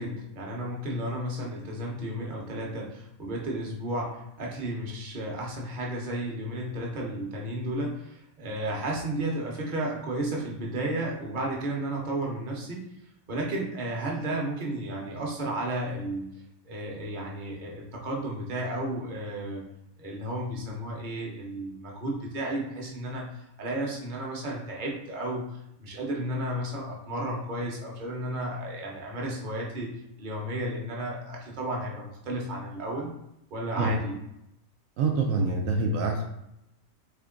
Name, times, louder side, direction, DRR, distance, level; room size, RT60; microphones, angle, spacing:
voice 1, 0.0-12.8 13.3-16.3 16.6-19.6 20.0-23.3 23.6-25.4 25.8-29.9 30.2-33.1 33.5-34.1, right 1 dB, 40° right, -2 dB, 1.0 m, -33 dB
voice 2, 35.0-36.2, right 3 dB, 75° right, 2 dB, 1.0 m, -25 dB
3.6 x 3.4 x 3.8 m, 0.82 s
omnidirectional pair, 1.4 m